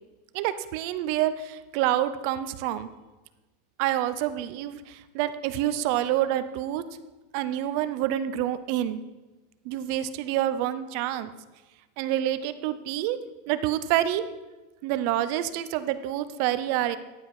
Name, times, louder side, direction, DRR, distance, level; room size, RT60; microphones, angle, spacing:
voice 1, 0.3-2.9 3.8-6.8 7.3-9.0 9.6-11.3 12.0-13.2 13.5-14.3 14.8-17.0, right 12 dB, 40° right, 12 dB, 0.6 m, -27 dB
14.5 x 10.0 x 4.8 m, 1.2 s
supercardioid pair, 175°, 0 cm